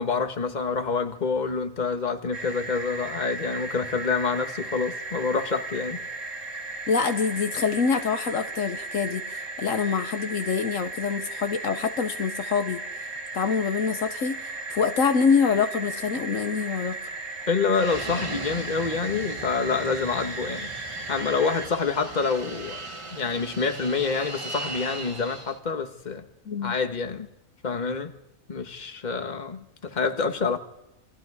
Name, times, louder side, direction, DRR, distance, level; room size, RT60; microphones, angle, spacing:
voice 1, 0.0-6.0 17.5-20.7 21.1-22.8 23.1-26.2 26.6-27.3 27.6-28.1 28.5-30.6, left 5 dB, 35° left, 1.5 m, -27 dB
sound 1, 2.3-21.7, right 2 dB, 65° right, 2.4 m, -36 dB
voice 2, 6.9-12.8 13.3-17.1 26.5-26.8, left 5 dB, 70° left, 1.4 m, -25 dB
Fixed-wing aircraft airplane, 17.8-25.6, right 2 dB, 25° right, 1.4 m, -38 dB
28.5 x 23.0 x 4.9 m
omnidirectional pair, 1.4 m